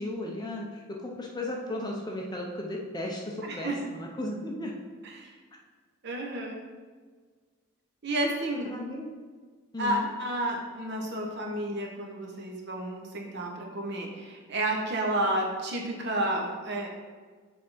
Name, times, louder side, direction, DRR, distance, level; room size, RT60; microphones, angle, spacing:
voice 1, 0.0-4.7 8.6-9.1 9.7-10.1, left 1 dB, 20° left, 0 dB, 0.6 m, -35 dB
voice 2, 3.5-3.8 5.0-5.3 6.0-6.6 8.0-8.7 9.8-16.9, right 1 dB, 50° right, 0 dB, 0.9 m, -31 dB
6.8 x 3.6 x 4.1 m, 1.5 s
head